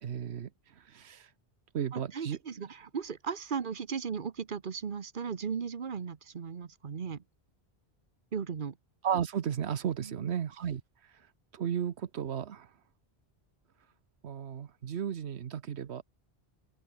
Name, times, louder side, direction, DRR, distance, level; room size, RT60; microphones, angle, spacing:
voice 1, 0.0-0.5 0.8-1.3 1.7-2.4 9.0-10.8 11.5-12.7 14.2-16.0, right 8 dB, 85° right, 1.2 m, -34 dB
voice 2, 1.9-7.2 8.3-8.8 10.0-10.3, right 6 dB, 55° right, 1.2 m, -37 dB
omnidirectional pair, 1.1 m